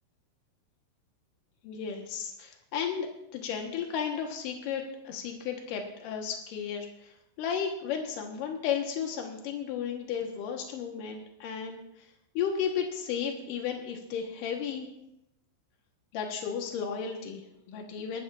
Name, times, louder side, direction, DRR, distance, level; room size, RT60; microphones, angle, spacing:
voice 1, 1.6-12.1 12.3-14.9 16.1-18.2, left 7 dB, 80° left, 2 dB, 1.9 m, -34 dB
22.0 x 12.0 x 2.5 m, 0.83 s
omnidirectional pair, 5.7 m